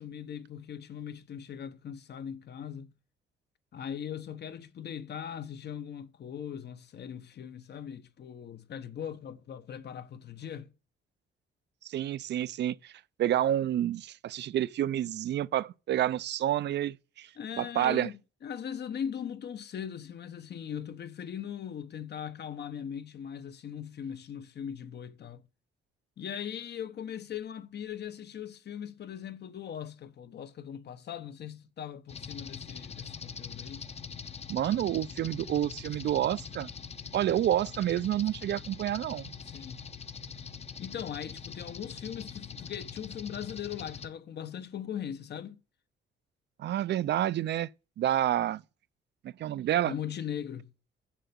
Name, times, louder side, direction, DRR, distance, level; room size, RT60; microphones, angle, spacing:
voice 1, 0.0-2.9 3.7-10.7 17.4-25.4 26.2-33.9 39.4-39.9 40.8-45.6 49.8-50.7, left 8 dB, 60° left, 1.1 m, -40 dB
voice 2, 11.8-12.9 13.2-17.3 17.6-18.1 34.5-36.7 37.1-39.3 46.6-47.7 48.0-48.6 49.4-49.9, right 12 dB, 60° right, 0.5 m, -29 dB
sound 1, 32.1-44.1, left 6 dB, 30° left, 0.8 m, -43 dB
7.5 x 6.8 x 7.0 m
cardioid pair, 90°, 20 cm